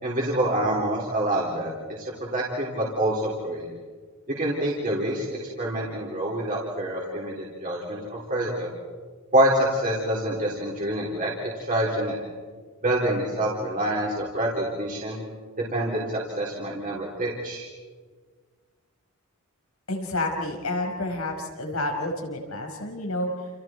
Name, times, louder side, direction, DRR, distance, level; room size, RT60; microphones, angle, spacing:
voice 1, 0.0-1.7 2.3-3.6 4.3-8.7 9.3-11.3 11.7-12.2 12.8-15.2 15.7-17.6, right 1 dB, 40° right, -4 dB, 4.1 m, -26 dB
voice 2, 19.9-23.3, left 2 dB, 80° left, 2 dB, 5.5 m, -29 dB
29.5 x 29.5 x 4.6 m, 1.5 s
head